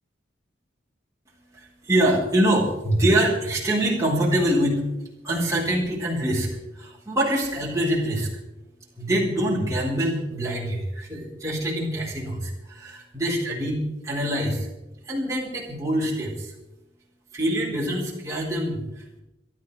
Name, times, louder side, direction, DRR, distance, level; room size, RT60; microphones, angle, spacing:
voice 1, 1.3-8.3 8.9-14.7 15.0-16.5 17.3-19.2, right 1 dB, 15° right, -6 dB, 4.4 m, -25 dB
26.5 x 12.5 x 3.5 m, 0.96 s
head